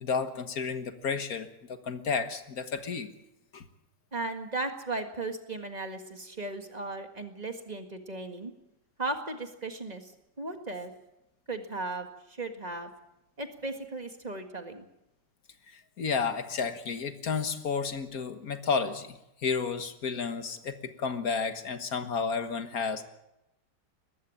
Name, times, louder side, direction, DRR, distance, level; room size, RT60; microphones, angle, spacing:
voice 1, 0.0-3.1 3.5-3.6 15.7-23.0, left 5 dB, 55° left, 9 dB, 1.9 m, -32 dB
voice 2, 4.1-8.5 9.0-10.1 10.4-10.9 11.5-12.9 13.4-14.9, right 2 dB, 25° right, 6 dB, 1.8 m, -36 dB
21.0 x 14.5 x 8.7 m, 0.90 s
omnidirectional pair, 1.9 m